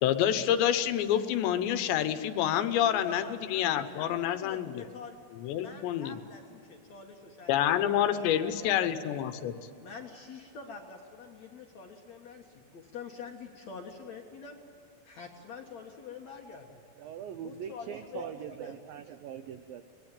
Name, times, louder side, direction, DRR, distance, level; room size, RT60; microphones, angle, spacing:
voice 1, 0.0-4.9 5.4-6.2 7.5-9.6, left 10 dB, 80° left, 10 dB, 3.2 m, -28 dB
voice 2, 2.8-5.2 5.6-9.0 9.8-14.6 15.0-16.8 17.4-18.7, left 5 dB, 60° left, 1 dB, 1.9 m, -46 dB
voice 3, 17.0-19.8, right 8 dB, 85° right, 9 dB, 2.0 m, -41 dB
24.5 x 20.5 x 9.1 m, 2.5 s
omnidirectional pair, 5.2 m